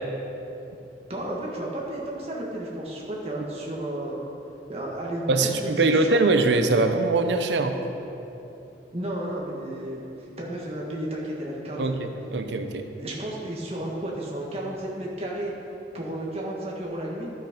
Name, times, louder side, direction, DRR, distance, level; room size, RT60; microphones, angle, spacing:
voice 1, 1.1-4.2 4.7-6.3 8.9-10.0 10.4-12.0 13.0-15.5 15.9-17.3, right 1 dB, 35° right, -3 dB, 1.5 m, -32 dB
voice 2, 5.3-7.7 11.8-12.8, right 3 dB, 90° right, 6 dB, 0.7 m, -22 dB
11.5 x 6.0 x 5.1 m, 3.0 s
head